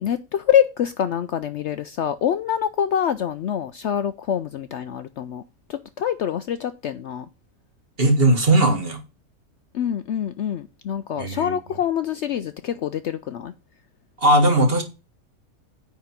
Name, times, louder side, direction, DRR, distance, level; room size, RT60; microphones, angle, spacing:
voice 1, 0.0-5.4 5.7-7.3 9.7-13.5, left 9 dB, 65° left, 0.7 m, -25 dB
voice 2, 8.0-9.0 11.2-11.5 14.2-14.8, right 1 dB, 40° right, 1.8 m, -18 dB
9.5 x 3.9 x 5.8 m
omnidirectional pair, 1.5 m